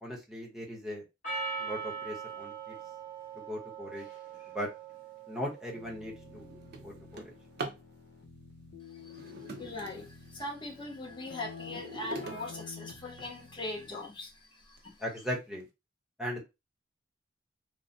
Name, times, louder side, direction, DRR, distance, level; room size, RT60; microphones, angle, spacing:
voice 1, 0.0-1.0 1.6-2.8 3.4-4.1 4.5-4.7 5.3-6.5 6.8-7.3 15.0-15.6 16.2-16.4, equal, 5° right, 0.9 m, -38 dB
Percussion, 1.2-5.8, right 5 dB, 45° left, 1.5 m, -41 dB
Drawer open or close, 5.2-5.4 5.9-7.9 9.0-10.6 11.1-13.5 14.2-14.3 14.8-14.9 15.2-15.6, right 3 dB, 55° right, 0.5 m, -44 dB
Keyboard (musical), 5.7-14.2, left 5 dB, 65° left, 0.7 m, -49 dB
voice 2, 9.6-14.9, left 2 dB, 25° left, 0.8 m, -41 dB
3.1 x 2.1 x 2.6 m
head